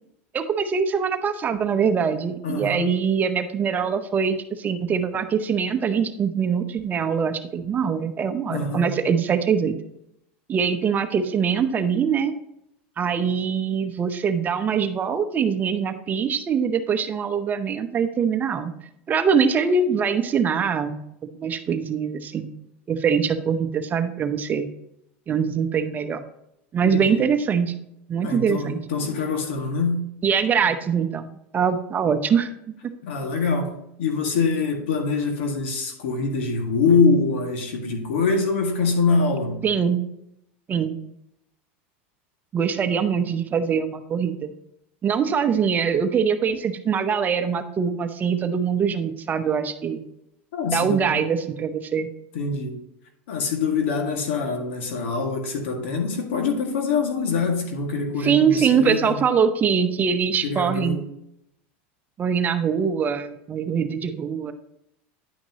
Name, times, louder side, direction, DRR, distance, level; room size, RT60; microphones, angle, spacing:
voice 1, 0.3-9.7 10.5-12.3 13.0-18.7 19.1-21.0 21.4-22.5 22.9-24.7 25.3-26.2 26.7-27.7 28.1-28.8 30.2-32.5 39.6-40.0 40.7-40.9 42.5-44.5 45.0-50.0 50.7-52.1 58.2-61.0 62.2-64.5, right 6 dB, 30° right, 8 dB, 0.8 m, -23 dB
voice 2, 2.4-2.9 8.5-8.9 26.8-27.2 28.2-30.1 33.0-33.7 34.0-39.6 50.5-51.2 52.3-52.7 53.3-59.2 60.4-61.0, left 4 dB, 80° left, 3 dB, 1.8 m, -24 dB
10.0 x 5.9 x 2.9 m, 0.79 s
supercardioid pair, 120°, 6 cm